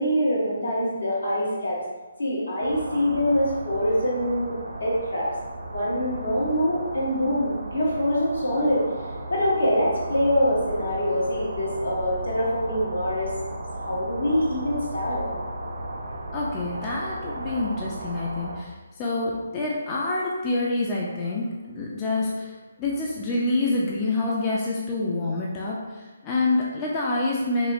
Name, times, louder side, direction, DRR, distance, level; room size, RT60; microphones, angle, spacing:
voice 1, 0.0-1.8 2.2-5.3 5.7-8.9 9.3-13.3 13.9-15.3, equal, 75° left, -5 dB, 1.0 m, -24 dB
sound 1, 2.6-18.6, right 1 dB, 55° right, 0.5 m, -35 dB
voice 2, 16.3-22.5 22.8-25.8 26.2-27.7, left 2 dB, 25° left, -4 dB, 0.4 m, -27 dB
2.9 x 2.7 x 2.5 m, 1.2 s
figure-of-eight pair, 140°, 0 cm